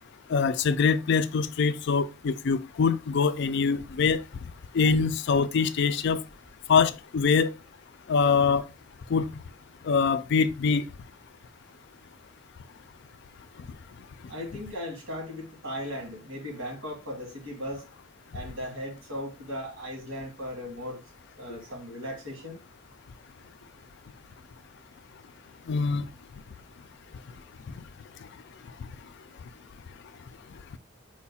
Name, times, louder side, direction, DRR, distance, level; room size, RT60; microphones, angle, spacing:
voice 1, 0.3-4.2 4.7-6.2 6.7-7.6 8.1-8.6 9.1-9.3 9.8-10.8 25.7-26.1, left 5 dB, 55° left, 0.3 m, -24 dB
voice 2, 14.3-17.8 18.3-21.0 21.4-22.6, equal, 80° right, 2.1 m, -37 dB
4.4 x 2.4 x 4.1 m
head